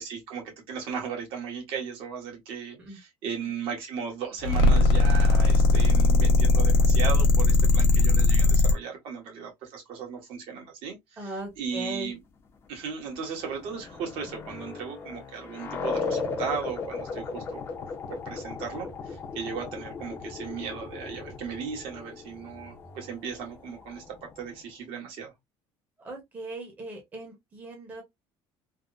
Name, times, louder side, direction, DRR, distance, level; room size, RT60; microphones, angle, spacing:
voice 1, 0.0-11.3 11.6-12.2 12.7-17.8 18.1-25.3, right 6 dB, 60° right, 1.4 m, -36 dB
sound 1, 4.4-8.7, left 2 dB, 70° left, 1.0 m, -19 dB
voice 2, 11.2-12.1 26.0-28.0, right 2 dB, 15° right, 0.8 m, -39 dB
sound 2, 13.1-24.5, left 4 dB, 25° left, 0.5 m, -37 dB
3.4 x 2.0 x 2.4 m
cardioid pair, 175°, 10 cm